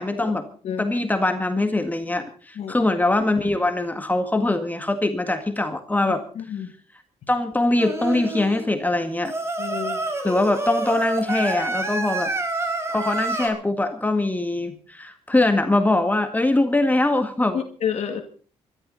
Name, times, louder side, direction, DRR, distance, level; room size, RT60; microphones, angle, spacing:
voice 1, 0.0-0.5 0.8-6.2 7.3-9.3 10.2-12.3 12.9-17.6, left 2 dB, 15° left, 7 dB, 1.9 m, -22 dB
voice 2, 6.4-6.7 9.6-10.0 17.5-18.2, left 8 dB, 65° left, 5 dB, 2.1 m, -29 dB
Singing, 7.8-8.6 9.2-13.5, right 2 dB, 20° right, 4.6 m, -28 dB
24.5 x 12.5 x 4.1 m, 0.40 s
cardioid pair, 95°, 12 cm